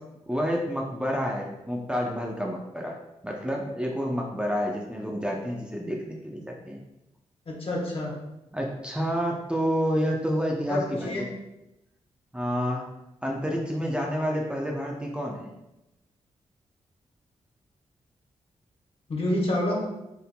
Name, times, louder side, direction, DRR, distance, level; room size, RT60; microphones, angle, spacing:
voice 1, 0.3-3.0 3.2-6.8 8.5-11.1 12.3-12.8 13.2-15.5, equal, 10° right, -1 dB, 0.6 m, -29 dB
voice 2, 7.5-8.1 10.7-11.2 19.1-19.9, left 1 dB, 50° left, -2 dB, 1.3 m, -28 dB
4.4 x 3.6 x 2.2 m, 0.94 s
cardioid pair, 60°, 12 cm